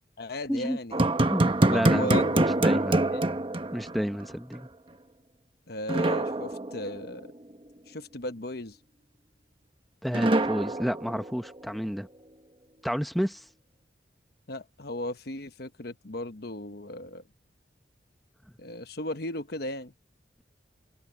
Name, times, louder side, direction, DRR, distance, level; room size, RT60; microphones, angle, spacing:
voice 1, 0.2-1.0 1.7-2.4 3.1-3.3 5.7-7.3 7.9-8.8 14.5-17.2 18.6-19.9, left 1 dB, 60° left, 1.2 m, -36 dB
sound 1, 0.9-4.3 4.5-4.6 5.9-7.3 10.1-11.7, right 2 dB, 30° right, 1.2 m, -25 dB
voice 2, 1.3-3.0 3.7-4.7 10.0-12.1 12.8-13.4, equal, ahead, 1.2 m, -30 dB
head